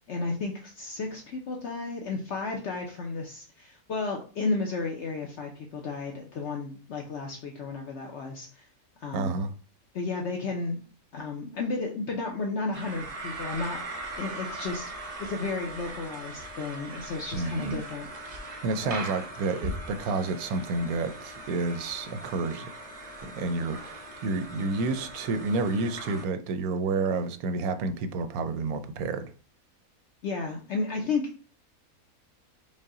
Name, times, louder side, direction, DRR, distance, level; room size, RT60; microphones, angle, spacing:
voice 1, 0.1-8.7 9.0-9.4 9.9-10.8 11.1-13.9 14.2-18.1 18.8-18.9 30.2-31.2, left 3 dB, 60° left, 0.8 m, -33 dB
voice 2, 9.1-9.5 17.3-17.8 18.6-22.7 23.2-29.3, right 3 dB, 85° right, 1.0 m, -30 dB
sound 1, 12.7-26.2, right 2 dB, 40° right, 0.5 m, -40 dB
5.3 x 2.1 x 3.6 m
omnidirectional pair, 1.5 m